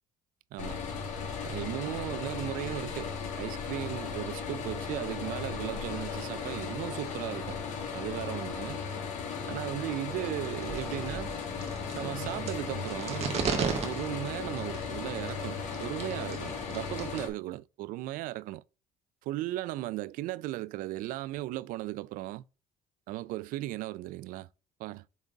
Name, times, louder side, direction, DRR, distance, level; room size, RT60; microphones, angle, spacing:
sound 1, 0.6-17.3, left 6 dB, 55° left, 2.0 m, -36 dB
voice 1, 1.4-7.6 7.9-8.8 9.4-11.3 11.9-18.6 19.3-22.4 23.1-24.5 24.8-25.0, right 16 dB, 70° right, 0.4 m, -36 dB
sound 2, 10.4-17.2, right 6 dB, 45° right, 1.5 m, -37 dB
8.2 x 3.5 x 3.9 m
cardioid pair, 125°, 15 cm